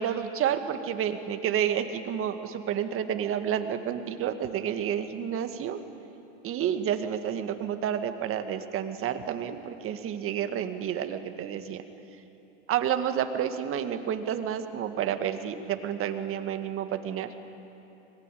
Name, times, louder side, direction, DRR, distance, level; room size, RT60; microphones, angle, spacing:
voice 1, 0.0-5.8 6.4-11.8 12.7-17.3, right 9 dB, 35° right, 8 dB, 1.8 m, -30 dB
25.0 x 20.0 x 9.2 m, 2.9 s
hypercardioid pair, 115°, 38 cm